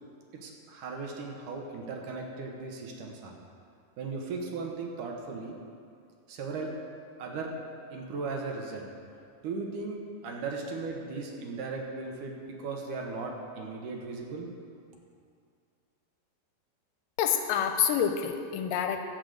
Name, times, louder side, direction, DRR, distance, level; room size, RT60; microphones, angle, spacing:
voice 1, 0.3-3.3 4.0-5.6 6.3-6.7 7.2-7.5 7.9-8.9 9.4-14.5, right 4 dB, 70° right, 1 dB, 2.4 m, -37 dB
voice 2, 17.2-19.0, left 8 dB, 80° left, 6 dB, 2.2 m, -27 dB
14.0 x 5.2 x 7.8 m, 2.4 s
omnidirectional pair, 4.1 m